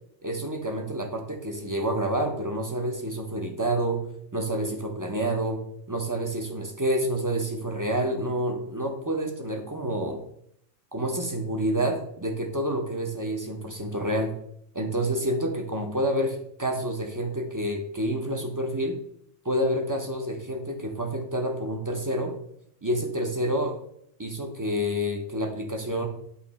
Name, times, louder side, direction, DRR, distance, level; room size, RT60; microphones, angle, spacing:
voice 1, 0.2-4.0 4.3-5.6 5.9-10.2 10.9-14.3 14.7-19.0 19.4-22.3 22.8-23.8 24.2-26.1, right 1 dB, 25° right, 3 dB, 0.4 m, -28 dB
8.2 x 2.9 x 4.1 m, 0.70 s
omnidirectional pair, 1.2 m